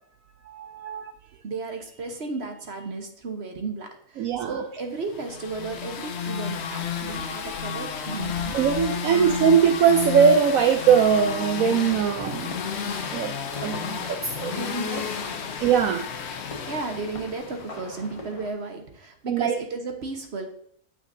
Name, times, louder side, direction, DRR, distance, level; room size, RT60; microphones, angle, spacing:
voice 1, 0.5-1.1 4.2-4.5 8.5-12.6 13.1-13.3 13.6-14.7 15.6-16.1 19.3-19.5, right 7 dB, 70° right, 6 dB, 1.0 m, -21 dB
voice 2, 1.2-8.6 9.1-9.4 14.5-15.3 16.7-20.5, right 3 dB, 45° right, 4 dB, 1.3 m, -34 dB
sound 1, 5.1-18.0, left 7 dB, 55° left, 0.9 m, -32 dB
sound 2, 10.9-18.5, left 2 dB, 25° left, 1.0 m, -43 dB
8.8 x 6.3 x 2.7 m, 0.67 s
omnidirectional pair, 1.6 m